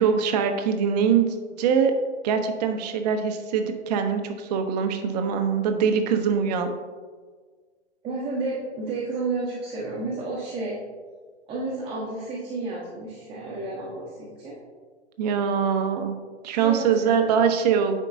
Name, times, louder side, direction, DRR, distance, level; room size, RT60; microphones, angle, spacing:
voice 1, 0.0-1.9 2.2-6.7 15.2-16.2 16.4-18.0, right 7 dB, 35° right, 6 dB, 0.7 m, -23 dB
voice 2, 8.0-10.8 11.5-14.6 16.6-17.3, right 3 dB, 15° right, -6 dB, 1.1 m, -31 dB
9.7 x 4.5 x 2.6 m, 1.5 s
figure-of-eight pair, 120°, 34 cm